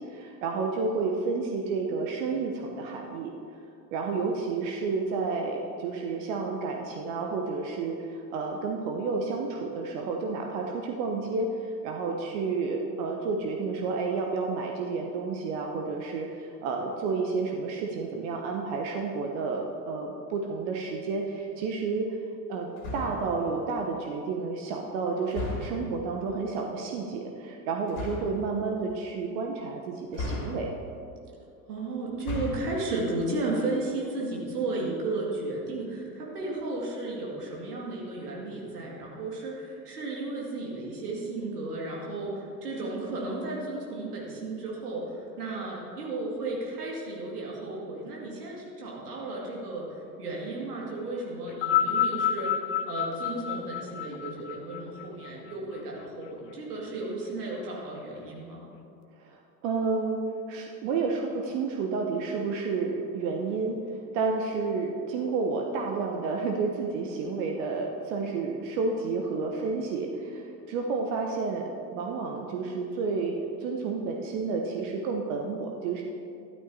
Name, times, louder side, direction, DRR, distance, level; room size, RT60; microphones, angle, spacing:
voice 1, 0.0-3.3 3.9-22.2 22.5-30.7 59.2-63.8 64.1-76.0, right 4 dB, 55° right, 1 dB, 1.0 m, -31 dB
sound 1, 22.8-23.3 25.3-25.9 27.9-28.4 30.1-30.9 32.1-32.8, left 2 dB, 60° left, 2.5 m, -35 dB
voice 2, 31.7-58.6, right 2 dB, 70° right, -3 dB, 2.3 m, -34 dB
sound 2, 51.5-56.0 56.9-57.0, left 9 dB, 45° left, 0.9 m, -29 dB
13.0 x 12.0 x 2.8 m, 2.5 s
figure-of-eight pair, 70°, 47 cm